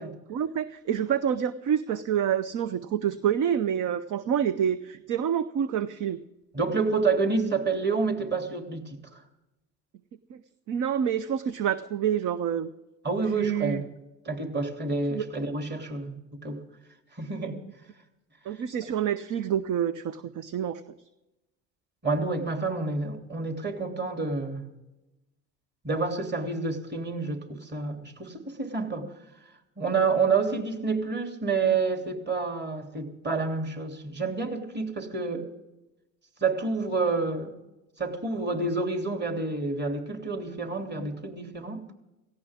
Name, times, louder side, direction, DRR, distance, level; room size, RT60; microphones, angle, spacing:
voice 1, 0.3-6.2 10.3-10.4 10.7-12.7 13.3-13.8 15.1-15.2 18.4-20.8, right 9 dB, 45° right, 14 dB, 0.8 m, -27 dB
voice 2, 6.5-9.2 13.0-13.9 14.2-16.6 17.2-17.6 22.0-24.7 25.8-29.1 29.8-35.5 36.4-37.5 38.0-41.8, right 4 dB, 25° right, 4 dB, 3.2 m, -28 dB
17.5 x 15.5 x 3.7 m, 0.97 s
hypercardioid pair, 75°, 42 cm